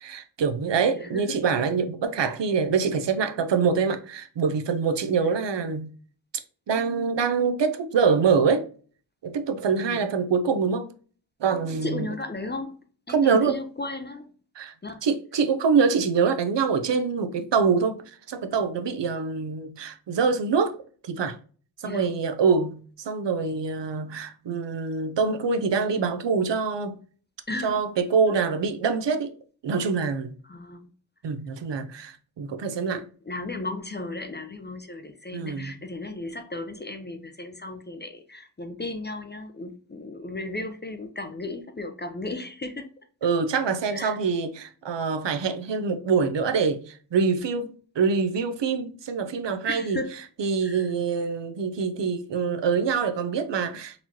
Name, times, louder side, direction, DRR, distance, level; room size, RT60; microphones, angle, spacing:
voice 1, 0.0-5.9 6.7-8.7 9.2-10.9 11.4-12.1 13.1-13.6 14.6-14.7 15.0-18.0 18.3-20.8 21.0-21.4 21.8-27.0 27.6-29.3 29.6-30.3 31.2-33.0 35.3-35.8 43.2-50.0 50.4-54.0, right 5 dB, 65° right, 0.6 m, -25 dB
voice 2, 0.9-1.4 9.8-10.1 11.8-12.8 13.1-14.3 14.8-15.0 21.8-22.1 27.5-27.8 30.4-30.9 32.9-42.9 43.9-44.2 49.7-50.1 50.6-50.9, left 2 dB, 25° left, 0.4 m, -35 dB
4.0 x 3.0 x 2.7 m
wide cardioid pair, 110°, 46 cm